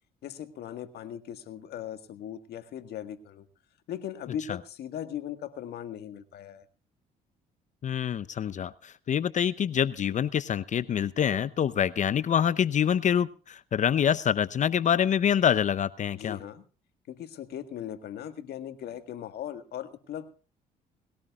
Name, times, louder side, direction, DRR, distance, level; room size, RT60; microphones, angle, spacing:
voice 1, 0.2-3.5 3.9-6.6 16.1-16.6 17.1-20.3, left 10 dB, 70° left, 9 dB, 1.7 m, -39 dB
voice 2, 7.8-16.4, left 8 dB, 45° left, 17 dB, 0.7 m, -26 dB
20.5 x 17.0 x 2.4 m, 0.36 s
supercardioid pair, 80°, 17 cm